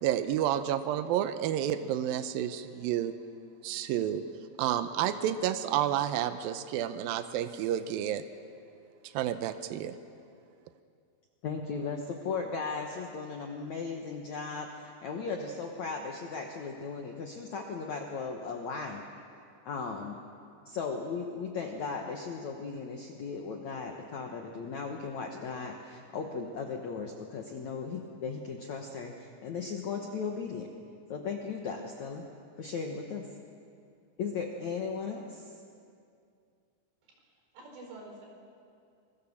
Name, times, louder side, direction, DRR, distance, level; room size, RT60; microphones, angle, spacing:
voice 1, 0.0-3.1 3.6-4.2 4.6-8.2 9.1-10.0, right 11 dB, 90° right, 10 dB, 2.0 m, -30 dB
voice 2, 11.4-19.0 19.7-20.2 20.7-30.7 31.1-32.3 32.6-33.3 34.2-35.4, left 5 dB, 70° left, 2 dB, 1.7 m, -37 dB
voice 3, 37.0-38.3, right 2 dB, 70° right, 1 dB, 6.5 m, -49 dB
25.5 x 22.5 x 7.2 m, 2.4 s
omnidirectional pair, 5.2 m